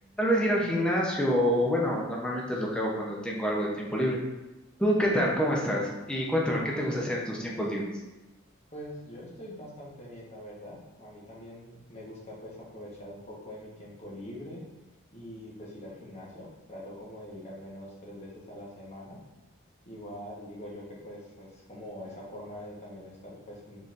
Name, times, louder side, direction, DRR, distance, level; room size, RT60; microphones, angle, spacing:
voice 1, 0.2-4.2 4.8-7.8, equal, 5° left, -3 dB, 0.6 m, -27 dB
voice 2, 8.7-14.6 15.1-19.2 19.9-23.8, equal, 30° left, -5 dB, 1.1 m, -44 dB
4.2 x 3.8 x 2.5 m, 1.1 s
head